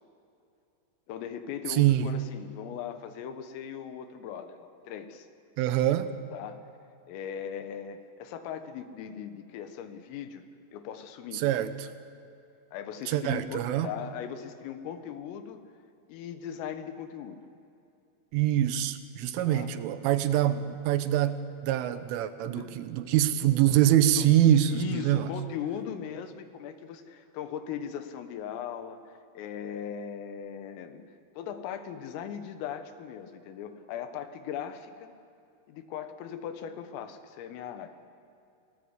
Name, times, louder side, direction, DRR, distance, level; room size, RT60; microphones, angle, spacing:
voice 1, 1.1-5.3 6.3-6.6 7.1-10.4 10.7-11.4 12.7-15.6 16.1-17.4 19.5-19.7 22.5-22.7 24.2-24.3 24.7-31.0 31.4-35.1 35.7-38.0, left 8 dB, 90° left, 8 dB, 4.0 m, -39 dB
voice 2, 1.7-2.1 5.6-6.1 11.3-11.9 13.1-13.9 18.3-25.3, right 12 dB, 80° right, 11 dB, 3.5 m, -25 dB
27.5 x 19.0 x 8.2 m, 2.6 s
omnidirectional pair, 5.8 m